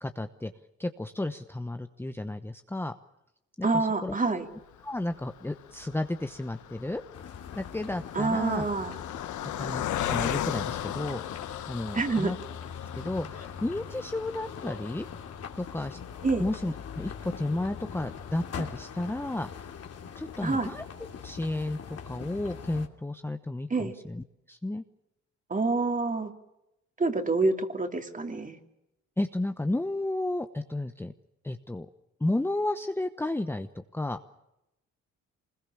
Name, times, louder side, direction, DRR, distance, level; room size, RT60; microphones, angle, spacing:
voice 1, 0.0-0.5 0.8-2.9 3.6-4.1 4.8-7.0 7.5-8.6 9.4-11.2 11.7-12.4 12.9-15.1 15.5-16.0 16.4-19.5 20.2-20.8 21.2-24.8 29.2-31.1 31.4-31.9 32.2-34.2, left 2 dB, 10° left, 8 dB, 1.0 m, -32 dB
voice 2, 3.6-4.5 8.1-9.0 11.9-12.3 16.2-16.5 20.4-20.7 23.7-23.9 25.5-26.3 27.0-28.6, right 3 dB, 25° right, 6 dB, 2.9 m, -27 dB
Car passing by, 4.7-20.2 20.7-20.8 21.0-21.2, left 11 dB, 75° left, 1.3 m, -39 dB
sound 1, 7.1-22.9, left 7 dB, 55° left, 2.8 m, -42 dB
24.5 x 21.0 x 7.2 m, 0.89 s
cardioid pair, 90°, 30 cm